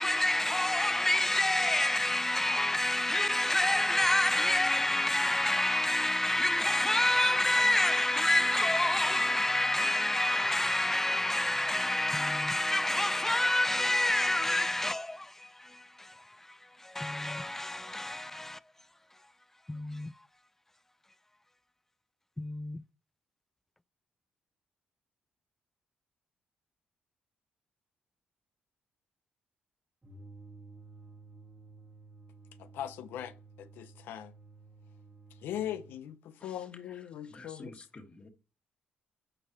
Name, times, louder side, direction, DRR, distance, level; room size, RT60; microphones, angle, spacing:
voice 1, 0.0-18.6 19.7-20.1 22.4-22.8, left 1 dB, 10° left, 0.3 m, -28 dB
sound 1, 30.0-36.0, right 3 dB, 20° right, 1.4 m, -53 dB
voice 2, 32.6-34.3 35.4-37.7, left 11 dB, 85° left, 0.6 m, -40 dB
voice 3, 36.4-38.3, left 2 dB, 30° left, 1.7 m, -51 dB
8.7 x 4.7 x 3.0 m
cardioid pair, 75°, 3 cm